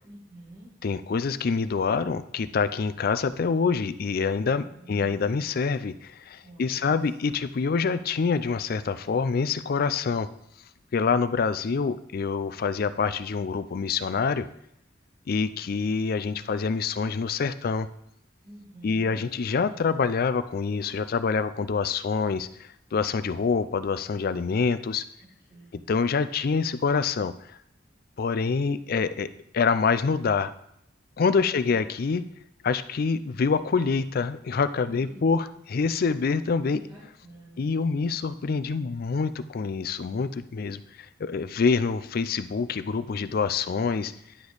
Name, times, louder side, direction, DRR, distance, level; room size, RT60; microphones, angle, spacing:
voice 1, 0.0-0.7 4.4-5.2 6.4-7.0 18.4-19.3 25.5-25.8 31.3-31.7 34.8-35.5 36.7-37.7 41.5-41.6, right 1 dB, 30° right, -10 dB, 2.5 m, -48 dB
voice 2, 0.8-10.3 10.9-14.5 15.3-17.9 18.8-22.5 22.9-25.0 25.7-27.3 28.2-29.3 29.5-30.5 31.2-32.2 32.6-36.8 37.6-40.8 41.2-44.1, left 5 dB, 55° left, 13 dB, 0.4 m, -26 dB
10.0 x 4.9 x 4.0 m, 0.75 s
head